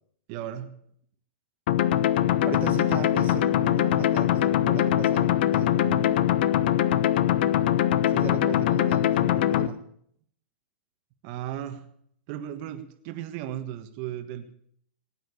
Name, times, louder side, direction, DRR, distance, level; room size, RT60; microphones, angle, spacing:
voice 1, 0.3-0.7 11.2-11.9 12.3-14.5, right 11 dB, 40° right, 8 dB, 1.6 m, -35 dB
sound 1, 1.7-9.7, left 11 dB, 60° left, 1.0 m, -22 dB
voice 2, 2.4-6.3 8.1-9.8, right 8 dB, 25° right, 8 dB, 1.7 m, -37 dB
17.5 x 9.3 x 8.5 m, 0.66 s
hypercardioid pair, 140°, 6 cm